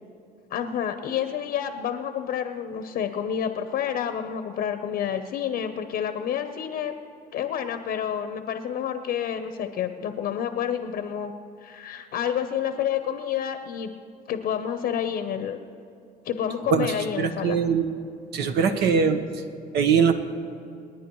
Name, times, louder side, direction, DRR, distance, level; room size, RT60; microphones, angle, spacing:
voice 1, 0.5-7.0 7.3-11.3 11.6-13.9 14.3-15.6 16.2-17.6, left 9 dB, 65° left, 8 dB, 0.8 m, -29 dB
voice 2, 16.7-17.9 18.3-19.4 19.7-20.1, right 6 dB, 75° right, 7 dB, 1.1 m, -22 dB
28.5 x 10.0 x 3.1 m, 2.6 s
cardioid pair, 110°, 17 cm